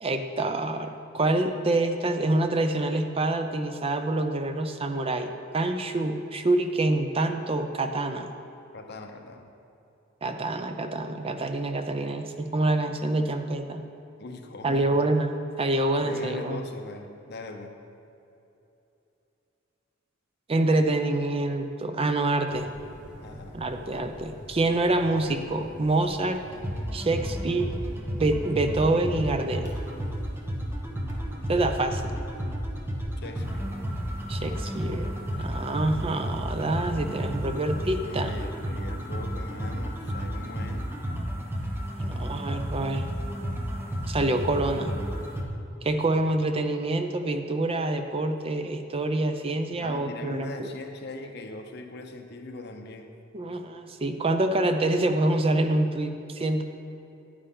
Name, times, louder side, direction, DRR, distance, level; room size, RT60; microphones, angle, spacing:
voice 1, 0.0-8.3 10.2-13.8 14.6-16.6 20.5-22.7 23.5-26.4 26.9-27.7 28.2-29.7 31.5-32.2 34.3-38.3 42.0-43.0 44.1-45.0 45.8-50.7 53.3-56.6, right 2 dB, 30° right, 7 dB, 0.5 m, -26 dB
voice 2, 8.7-9.4 14.2-14.9 16.0-17.7 23.2-23.6 33.2-33.7 38.0-40.9 49.8-53.2, left 2 dB, 55° left, 4 dB, 0.8 m, -41 dB
sound 1, 22.5-37.3, equal, 60° right, 1.9 m, -47 dB
sound 2, 26.5-45.4, equal, 10° right, 1.0 m, -32 dB
9.9 x 9.7 x 3.8 m, 2.9 s
head